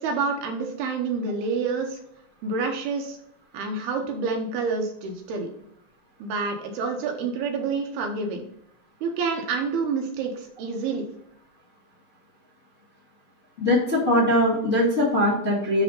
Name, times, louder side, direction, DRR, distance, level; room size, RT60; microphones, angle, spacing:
voice 1, 0.0-2.0 2.4-3.2 3.5-5.5 6.2-8.4 9.0-11.1, right 4 dB, 75° right, 2 dB, 2.7 m, -28 dB
voice 2, 13.6-15.8, left 1 dB, 25° left, -6 dB, 1.6 m, -21 dB
10.5 x 3.5 x 5.3 m, 0.73 s
omnidirectional pair, 4.9 m